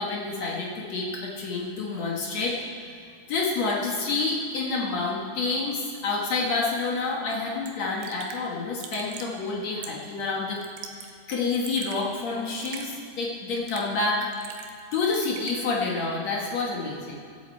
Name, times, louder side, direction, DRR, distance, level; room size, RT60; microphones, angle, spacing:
voice 1, 0.0-2.6 3.3-10.6 11.3-14.3 14.9-17.1, left 3 dB, 65° left, -3 dB, 1.7 m, -28 dB
Raindrop / Drip, 7.3-7.4 7.7-7.8 8.0-8.4 8.8-9.3 9.8-10.1 10.6-11.1 11.4-12.0 12.6-12.9 13.5-14.0 14.3-14.8 15.1-15.6, right 7 dB, 75° right, 2.5 m, -42 dB
24.5 x 8.3 x 4.5 m, 2.4 s
omnidirectional pair, 5.2 m